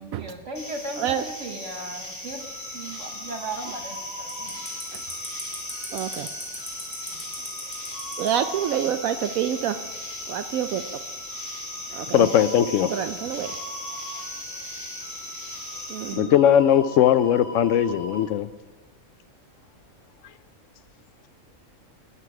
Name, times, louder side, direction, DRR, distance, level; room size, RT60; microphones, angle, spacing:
voice 1, 0.0-2.4 2.7-4.6 7.1-7.2, right 2 dB, 55° right, 1.3 m, -37 dB
sound 1, 0.5-16.1, left 1 dB, 15° left, 3.9 m, -37 dB
sound 2, 2.4-18.2, left 1 dB, 35° right, 3.3 m, -42 dB
voice 2, 5.9-6.3 8.2-9.8 10.3-10.8 11.9-12.1 13.0-13.5 15.9-16.3, right 10 dB, 75° right, 1.0 m, -27 dB
voice 3, 12.1-13.0 16.1-18.5 20.2-20.3, left 10 dB, 70° left, 0.9 m, -19 dB
12.5 x 10.5 x 4.8 m
omnidirectional pair, 1.5 m